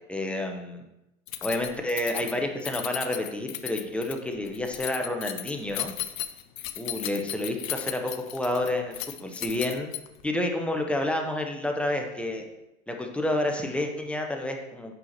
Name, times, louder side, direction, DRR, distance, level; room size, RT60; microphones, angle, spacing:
voice 1, 0.1-0.8 1.4-5.9 6.8-9.9 10.2-12.4 12.9-14.9, left 1 dB, 5° left, 3 dB, 0.7 m, -29 dB
Keys jangling, 1.3-10.3, left 12 dB, 80° left, 0.8 m, -36 dB
8.1 x 5.6 x 4.2 m, 0.91 s
hypercardioid pair, 125°, 40 cm